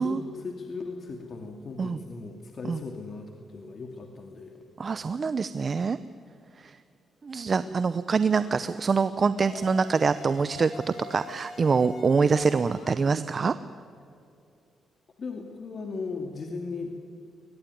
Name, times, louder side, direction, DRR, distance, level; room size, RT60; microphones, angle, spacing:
voice 1, 0.0-4.6 7.6-7.7 15.2-17.0, left 4 dB, 50° left, 3 dB, 2.4 m, -37 dB
voice 2, 4.8-6.0 6.6-6.7 7.2-13.5, right 5 dB, 45° right, 13 dB, 0.7 m, -25 dB
sound 1, 8.3-8.6 9.4-13.0, left 4 dB, 75° left, 5.2 m, -44 dB
22.5 x 20.5 x 9.4 m, 2.6 s
cardioid pair, 80°, 0 cm